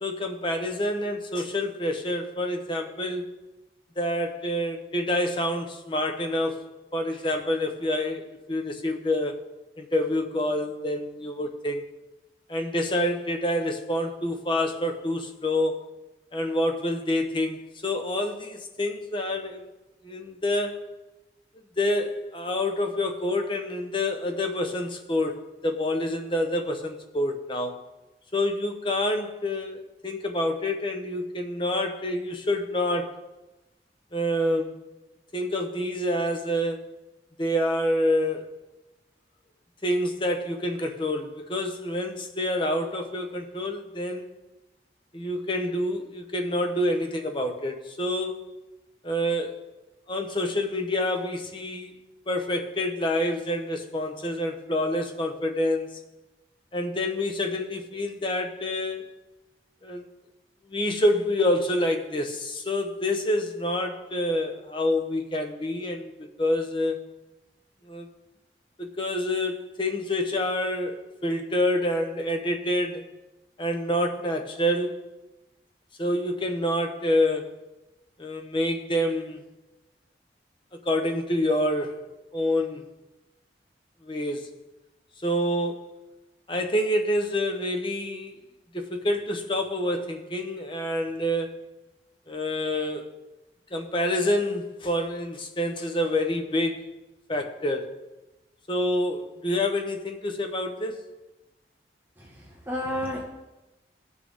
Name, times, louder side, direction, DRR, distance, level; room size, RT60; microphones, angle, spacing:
voice 1, 0.0-3.3 4.0-6.6 6.9-9.4 9.8-11.8 12.5-15.9 16.3-19.7 20.0-20.8 21.8-27.8 28.3-33.2 34.1-34.8 35.3-37.1 37.4-38.5 39.8-44.3 45.1-48.4 49.0-49.6 50.1-51.9 52.3-56.0 56.7-59.1 59.8-60.1 60.7-67.0 67.8-68.1 68.8-73.0 73.6-75.0 76.0-77.6 78.2-79.4 80.8-82.1 82.3-82.8 84.0-84.5 85.2-85.9 86.5-88.4 88.7-91.8 92.3-93.1 93.7-96.8 97.3-98.0 98.7-101.0, left 1 dB, 30° left, 4 dB, 0.9 m, -27 dB
voice 2, 102.2-103.2, left 1 dB, 10° right, -4 dB, 1.6 m, -32 dB
16.5 x 6.3 x 3.6 m, 1.0 s
head